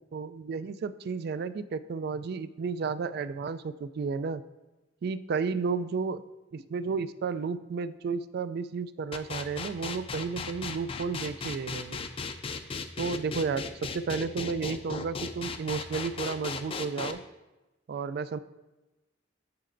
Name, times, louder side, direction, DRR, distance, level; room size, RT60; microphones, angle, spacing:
voice 1, 0.0-4.4 5.0-6.2 6.5-12.0 13.0-17.2 17.9-18.4, right 5 dB, 55° right, 14 dB, 0.3 m, -32 dB
sound 1, 9.1-17.1, left 4 dB, 30° left, 0.4 m, -36 dB
9.5 x 6.6 x 2.5 m, 1.1 s
head